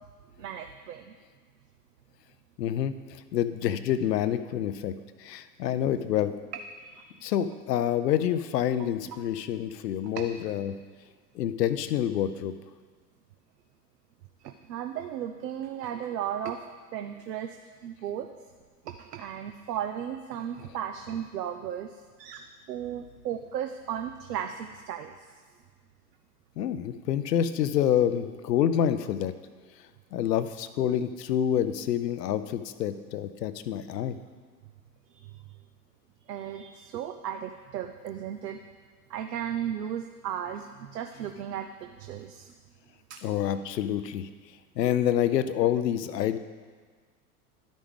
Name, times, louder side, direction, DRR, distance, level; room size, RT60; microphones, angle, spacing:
voice 1, 0.4-1.1 6.8-7.1 9.1-9.2 10.1-10.3 14.4-16.6 16.9-18.3 18.8-22.4 22.7-25.3 35.1-35.3 36.3-38.6 39.1-42.5 43.1-43.2, right 9 dB, 80° right, 6 dB, 0.6 m, -35 dB
voice 2, 2.6-4.9 5.2-6.3 7.2-10.7 11.3-12.5 26.6-29.3 30.1-34.2 43.2-44.3 44.8-46.4, left 10 dB, 80° left, 12 dB, 0.6 m, -27 dB
12.0 x 5.2 x 3.6 m, 1.5 s
hypercardioid pair, 85°, 48 cm